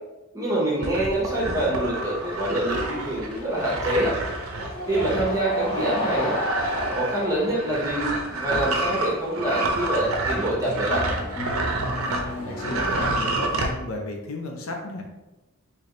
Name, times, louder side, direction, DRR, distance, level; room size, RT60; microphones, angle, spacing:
voice 1, 0.3-4.1 4.9-6.4 6.9-8.1 8.4-11.0, right 1 dB, 15° right, -5 dB, 0.8 m, -25 dB
sound 1, 0.8-12.3 12.6-13.7, right 2 dB, 75° right, 0.5 m, -29 dB
sound 2, 1.1-13.3, left 1 dB, 25° left, 1.0 m, -34 dB
voice 2, 12.4-15.0, left 2 dB, 75° left, 1 dB, 0.6 m, -33 dB
3.3 x 2.8 x 3.7 m, 1.0 s
head